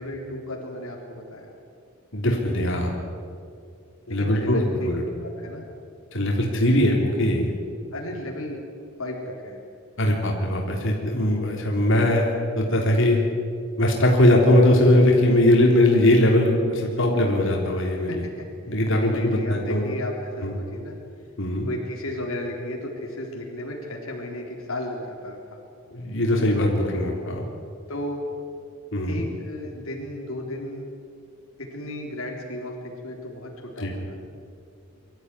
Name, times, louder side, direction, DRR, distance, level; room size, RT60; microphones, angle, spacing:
voice 1, 0.0-1.5 4.1-4.9 5.2-5.6 7.9-8.6 9.0-9.6 18.1-18.5 19.0-21.0 21.6-25.6 27.9-28.2 29.0-30.9 31.6-34.2, left 1 dB, 85° left, 0 dB, 3.7 m, -34 dB
voice 2, 2.1-2.9 4.1-5.0 6.1-7.5 10.0-13.2 13.8-18.2 18.6-19.8 20.4-20.5 21.4-21.7 25.9-27.5 28.9-29.2 33.8-33.9, left 1 dB, 65° left, -1 dB, 3.7 m, -20 dB
24.0 x 13.5 x 9.8 m, 2.4 s
head